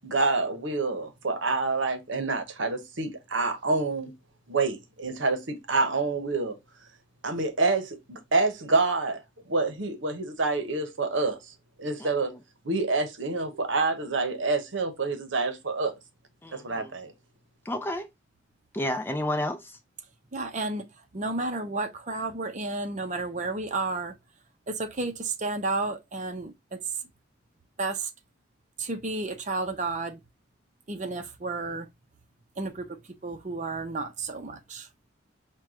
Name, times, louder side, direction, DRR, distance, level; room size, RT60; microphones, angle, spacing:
voice 1, 0.0-4.1 4.5-6.6 7.2-9.2 9.5-11.4 11.8-12.3 12.6-15.9 16.5-17.1, right 3 dB, 70° right, 0.9 m, -27 dB
voice 2, 12.0-12.3 16.4-16.9 17.7-18.1 18.7-19.8, left 1 dB, 10° left, 0.4 m, -31 dB
voice 3, 20.3-20.8 21.1-24.1 24.7-26.8 27.8-28.1 28.8-30.2 30.9-31.9 32.6-34.9, right 3 dB, 40° right, 0.7 m, -32 dB
4.6 x 2.2 x 3.6 m
head